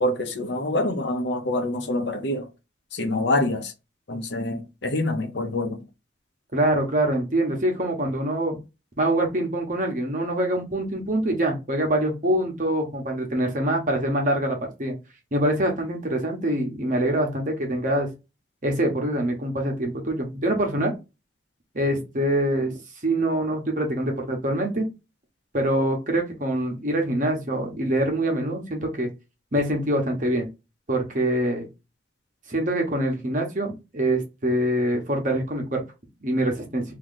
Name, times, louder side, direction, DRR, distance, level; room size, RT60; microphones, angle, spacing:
voice 1, 0.0-2.5 2.9-3.7 4.1-5.9, left 1 dB, 70° left, 0.8 m, -26 dB
voice 2, 6.5-8.6 9.0-14.9 15.3-18.1 18.6-20.9 21.7-22.7 23.0-24.9 25.5-29.1 29.5-30.5 30.9-31.7 32.5-35.8 36.2-36.8, right 1 dB, 45° right, 1.1 m, -24 dB
3.1 x 2.8 x 3.9 m
head